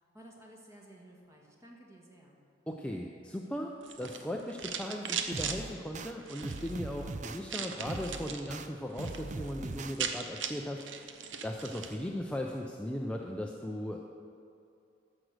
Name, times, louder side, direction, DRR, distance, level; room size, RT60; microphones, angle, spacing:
voice 1, 0.1-2.4, right 1 dB, 15° right, -1 dB, 1.7 m, -54 dB
voice 2, 2.7-14.0, equal, 5° left, 0 dB, 0.5 m, -38 dB
sound 1, 3.8-5.6 6.2-6.7 7.5-8.5 8.8-9.2 9.5-9.6 9.8-12.0, right 7 dB, 90° right, 0.8 m, -38 dB
sound 2, 5.3-6.1 6.4-7.4 7.9-8.7 9.0-9.9, right 2 dB, 40° right, 0.6 m, -40 dB
14.0 x 6.1 x 6.6 m, 2.6 s
head